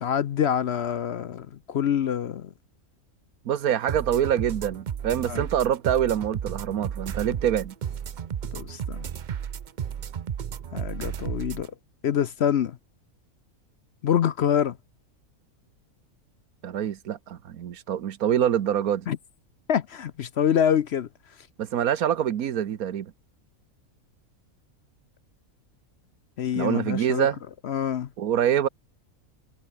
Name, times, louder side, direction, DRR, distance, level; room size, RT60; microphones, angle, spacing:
voice 1, 0.0-2.5 5.3-5.5 8.5-9.1 10.7-11.7 12.0-12.8 14.0-14.8 19.1-19.2 19.7-21.1 26.4-27.3 27.6-28.1, left 9 dB, 60° left, 0.8 m, -26 dB
voice 2, 3.4-7.7 16.6-19.1 21.6-23.1 26.5-27.4 28.2-28.7, right 10 dB, 80° right, 1.4 m, -25 dB
sound 1, 3.9-11.7, right 8 dB, 50° right, 0.5 m, -33 dB
omnidirectional pair, 1.5 m